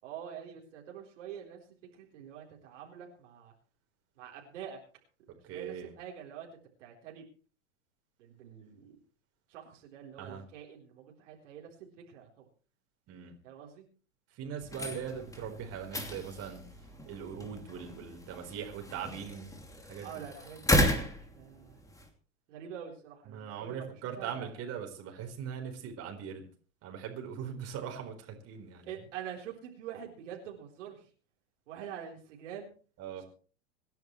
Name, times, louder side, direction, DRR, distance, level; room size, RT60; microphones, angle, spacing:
voice 1, 0.0-1.6 1.9-3.5 4.2-4.8 5.5-6.5 6.8-7.2 8.2-9.0 9.5-12.5 13.4-13.8 20.0-21.8 22.5-23.9 24.2-24.6 28.9-31.1 31.7-32.7 33.2-33.3, right 9 dB, 65° right, -1 dB, 4.1 m, -46 dB
voice 2, 5.4-5.9 10.2-10.4 13.1-13.3 14.3-16.6 17.1-20.2 23.3-26.4 26.8-28.9 33.0-33.2, right 7 dB, 40° right, 3 dB, 4.3 m, -41 dB
sound 1, 14.6-22.1, left 1 dB, 10° left, 2.7 m, -34 dB
26.0 x 10.5 x 3.2 m, 0.41 s
hypercardioid pair, 110°, 39 cm